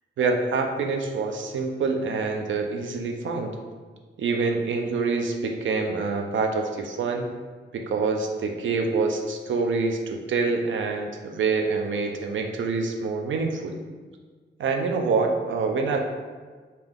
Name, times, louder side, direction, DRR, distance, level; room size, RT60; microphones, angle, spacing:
voice 1, 0.2-3.6 4.2-7.3 7.7-13.8 14.6-16.0, right 4 dB, 75° right, 4 dB, 0.5 m, -26 dB
3.6 x 2.8 x 3.5 m, 1.5 s
wide cardioid pair, 150°, 20 cm